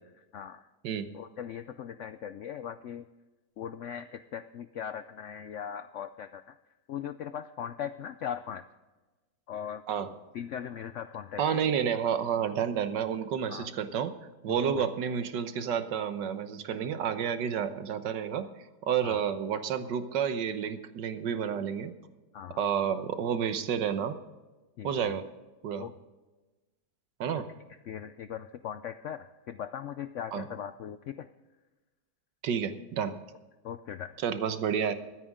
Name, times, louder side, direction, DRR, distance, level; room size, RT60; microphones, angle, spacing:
voice 1, 0.3-0.6 1.1-3.0 3.6-6.5 6.9-8.6 9.5-9.8 10.3-11.6 13.5-13.7 14.5-14.8 19.0-19.2 22.3-23.0 24.8-25.1 25.8-25.9 27.3-27.4 27.9-31.3 33.6-34.2, left 9 dB, 80° left, 11 dB, 0.6 m, -39 dB
voice 2, 11.4-14.2 14.4-18.5 18.9-21.9 22.6-24.2 24.8-25.3 25.6-25.9 27.2-27.5 30.3-30.5 32.4-33.2 34.2-34.9, right 8 dB, 85° right, 10 dB, 1.6 m, -30 dB
22.5 x 9.4 x 3.7 m, 1.2 s
omnidirectional pair, 1.8 m